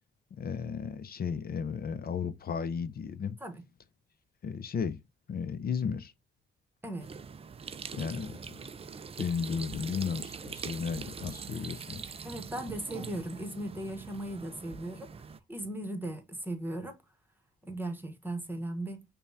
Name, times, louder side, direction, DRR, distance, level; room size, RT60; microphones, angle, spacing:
voice 1, 0.4-3.4 4.4-5.0 5.3-6.1 7.9-8.7 9.2-12.1, left 6 dB, 45° left, 0.6 m, -34 dB
sound 1, 7.0-15.4, right 6 dB, 30° right, 0.4 m, -43 dB
voice 2, 12.2-15.1 15.5-17.0 17.6-19.0, right 1 dB, 10° right, 1.1 m, -37 dB
5.2 x 2.3 x 2.6 m
cardioid pair, 90°, 21 cm